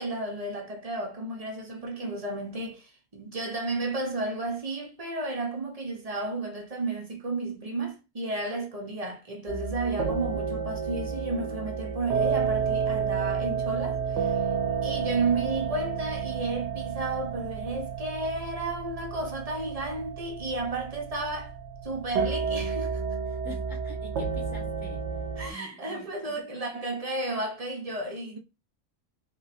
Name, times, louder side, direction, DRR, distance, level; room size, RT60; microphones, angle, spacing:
voice 1, 0.0-14.4 14.8-21.5 21.8-23.0 25.4-28.4, right 2 dB, 45° right, 0.5 m, -32 dB
sound 1, 9.5-25.5, right 6 dB, 65° right, 0.9 m, -31 dB
voice 2, 23.2-25.1 25.5-26.6, equal, ahead, 1.0 m, -46 dB
3.0 x 2.9 x 2.5 m
omnidirectional pair, 1.4 m